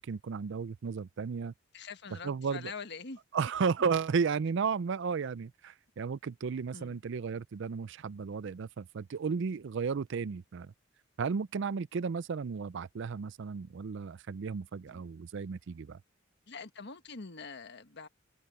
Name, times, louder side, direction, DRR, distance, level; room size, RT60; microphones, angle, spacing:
voice 1, 0.0-1.5 2.2-2.7 3.3-10.7 11.2-16.0, right 5 dB, 65° right, 0.4 m, -34 dB
voice 2, 1.7-3.2 6.7-7.0 14.9-15.0 16.5-18.1, left 4 dB, 60° left, 1.4 m, -44 dB
open air
head